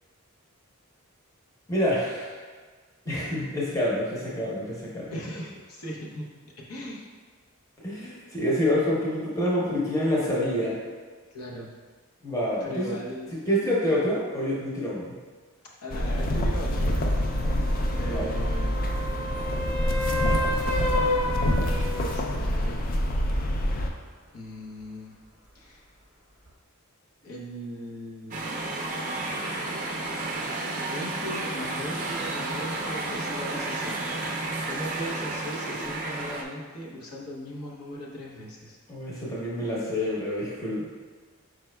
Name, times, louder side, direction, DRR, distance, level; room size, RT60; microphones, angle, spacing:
voice 1, 1.7-2.4 3.0-5.1 7.8-10.8 12.2-12.9 13.5-15.2 18.1-18.3 38.9-40.9, left 1 dB, 15° left, -5 dB, 0.8 m, -27 dB
voice 2, 5.1-7.1 11.3-11.7 12.6-13.4 13.8-14.0 15.8-17.1 18.0-19.0 21.8-22.9 24.3-25.2 25.5-25.8 27.2-28.5 30.9-34.3 34.6-38.8, equal, 90° left, -3 dB, 0.8 m, -38 dB
sound 1, 15.9-23.9, equal, 40° left, 0.3 m, -26 dB
sound 2, 16.7-22.4 26.5-26.6, left 1 dB, 65° left, 1.3 m, -31 dB
sound 3, 28.3-36.4, right 2 dB, 35° right, 0.4 m, -32 dB
4.9 x 4.5 x 2.2 m, 1.4 s
head